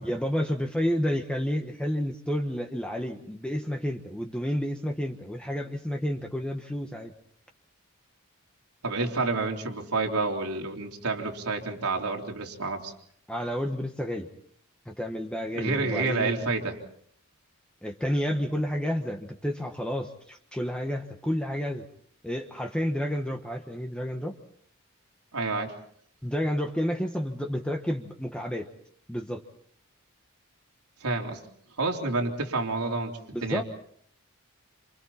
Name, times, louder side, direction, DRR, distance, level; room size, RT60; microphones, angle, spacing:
voice 1, 0.0-7.1 13.3-14.3 14.9-16.4 17.8-21.9 22.2-24.4 26.2-28.7 29.1-29.4 33.3-33.6, equal, 5° left, 2 dB, 1.2 m, -30 dB
voice 2, 8.8-12.9 15.5-16.8 25.3-25.7 31.0-31.4 31.8-33.6, right 3 dB, 90° right, 1 dB, 3.7 m, -29 dB
28.0 x 28.0 x 4.3 m, 0.64 s
head